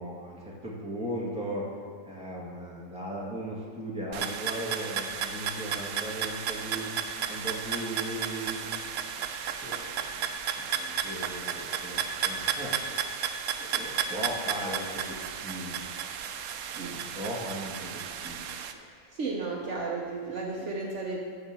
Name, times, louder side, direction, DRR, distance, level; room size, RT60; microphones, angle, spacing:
voice 1, 0.0-1.7 2.1-8.7 9.6-10.2 10.5-12.8 13.6-15.1 15.4-15.8 16.7-17.9 18.2-18.4 18.9-19.2, right 1 dB, 5° right, -5 dB, 1.9 m, -37 dB
sound 1, 4.1-18.7, right 8 dB, 80° right, 1.1 m, -33 dB
voice 2, 19.1-21.2, right 3 dB, 60° right, -1 dB, 1.3 m, -33 dB
13.0 x 4.4 x 7.4 m, 2.2 s
omnidirectional pair, 1.5 m